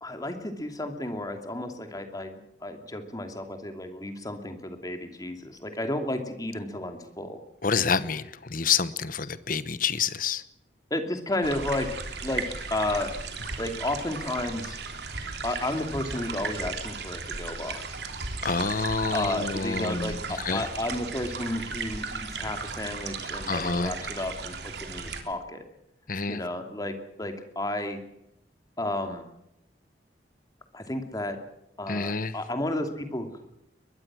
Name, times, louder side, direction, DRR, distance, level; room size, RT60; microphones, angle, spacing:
voice 1, 0.0-7.4 10.9-11.9 12.2-12.4 12.7-13.1 13.6-14.8 15.4-17.8 19.1-25.6 26.3-28.0 28.8-29.3 30.7-31.4 31.8-33.5, left 1 dB, 20° left, 6 dB, 2.7 m, -32 dB
voice 2, 7.6-10.4 18.4-20.6 23.5-23.9 26.1-26.4 31.9-32.3, left 5 dB, 50° left, 14 dB, 1.1 m, -28 dB
sound 1, 11.4-25.2, right 4 dB, 70° right, 3.3 m, -36 dB
22.5 x 21.5 x 6.3 m, 0.83 s
head